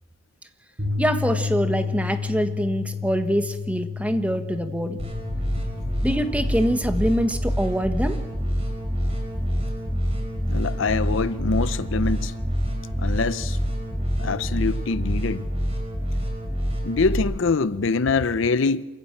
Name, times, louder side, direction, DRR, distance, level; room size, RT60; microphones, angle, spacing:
Bass guitar, 0.8-7.0, left 5 dB, 50° right, 6.3 m, -31 dB
voice 1, 1.0-5.0 6.0-8.2, equal, 5° right, 1.2 m, -24 dB
sound 1, 5.0-17.2, equal, 30° right, 5.4 m, -26 dB
voice 2, 10.5-12.3 13.0-13.6 14.2-15.5 16.8-18.8, left 4 dB, 65° left, 0.6 m, -24 dB
27.0 x 14.5 x 8.7 m
head